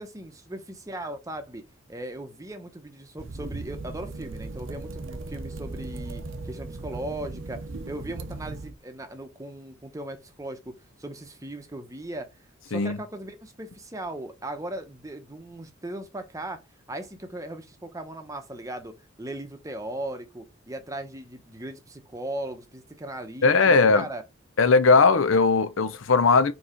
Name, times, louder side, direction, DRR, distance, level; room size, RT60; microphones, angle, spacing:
voice 1, 0.0-1.6 1.9-12.3 12.7-16.6 16.9-24.2, right 1 dB, 15° right, 0.9 m, -38 dB
sound 1, 3.2-8.7, right 3 dB, 65° right, 0.7 m, -37 dB
voice 2, 23.4-24.0 24.6-26.5, left 4 dB, 70° left, 0.7 m, -19 dB
4.7 x 4.2 x 5.0 m
head